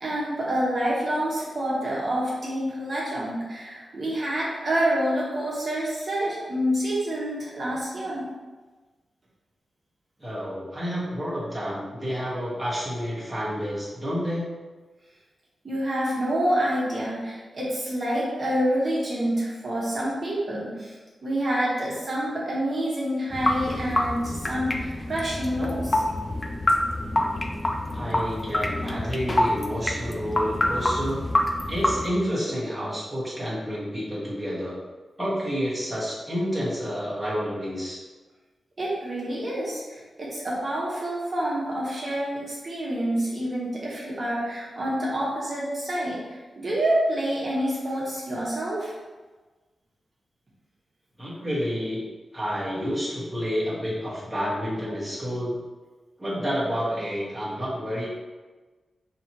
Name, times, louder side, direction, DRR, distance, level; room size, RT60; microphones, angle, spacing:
voice 1, 0.0-8.3 15.6-26.0 38.8-48.9, right 1 dB, 40° right, -6 dB, 1.0 m, -27 dB
voice 2, 10.2-14.5 27.9-31.2 31.7-34.8 35.2-38.0 51.2-52.0 52.3-55.6 56.2-58.1, equal, 10° right, -8 dB, 1.2 m, -29 dB
sound 1, 23.3-32.1, left 1 dB, 25° left, 0.4 m, -26 dB
4.9 x 2.8 x 2.9 m, 1.3 s
wide cardioid pair, 120°, 0 cm